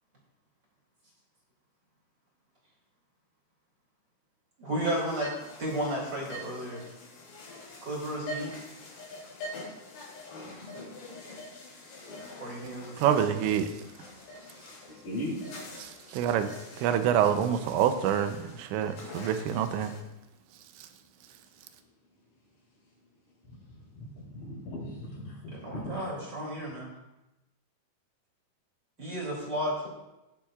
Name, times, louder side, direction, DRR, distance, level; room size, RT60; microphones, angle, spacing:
voice 1, 4.6-5.3 5.6-6.8 7.8-8.5 12.4-13.4 25.5-26.9 29.0-29.9, right 1 dB, 30° right, 2.4 m, -33 dB
sound 1, 4.8-20.0, left 2 dB, 75° left, 4.9 m, -45 dB
voice 2, 13.0-13.7 15.8-19.9 20.8-20.9, right 9 dB, 85° right, 3.0 m, -27 dB
voice 3, 15.0-15.4 24.0-26.0, left 1 dB, 50° left, 4.9 m, -38 dB
18.5 x 7.4 x 2.4 m
omnidirectional pair, 5.1 m